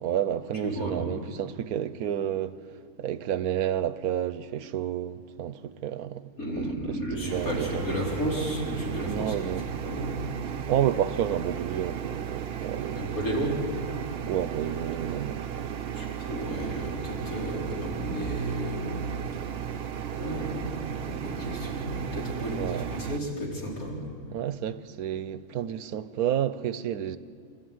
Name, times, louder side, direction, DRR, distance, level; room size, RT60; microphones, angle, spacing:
voice 1, 0.0-2.6 3.0-6.3 6.6-7.8 9.1-9.7 10.7-13.2 14.3-15.7 22.4-22.9 24.3-27.2, right 10 dB, 90° right, 1.2 m, -30 dB
voice 2, 0.6-1.0 6.4-9.3 9.8-10.2 12.9-13.6 15.9-19.0 20.1-24.0, right 1 dB, 70° left, 4.9 m, -32 dB
sound 1, 7.3-23.2, right 8 dB, 50° right, 0.8 m, -35 dB
27.0 x 13.5 x 9.6 m
omnidirectional pair, 1.5 m